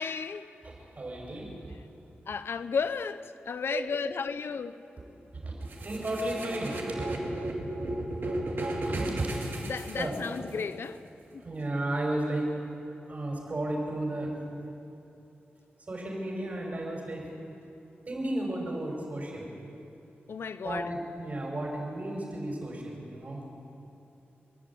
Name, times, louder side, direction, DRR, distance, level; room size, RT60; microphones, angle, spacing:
voice 1, 0.0-0.5 2.3-4.8 9.6-11.0 11.3-11.4 20.3-20.8, left 5 dB, 75° left, 0.8 m, -33 dB
voice 2, 0.6-1.6 3.7-3.8 5.4-7.4 8.7-9.3 10.0-10.2 11.4-12.5 13.1-14.3 15.9-17.3 18.1-19.5 20.6-23.4, right 1 dB, 40° right, 5.8 m, -33 dB
sound 1, 5.7-10.6, right 1 dB, 65° right, 2.8 m, -35 dB
29.0 x 11.5 x 8.6 m
wide cardioid pair, 160°, 4 cm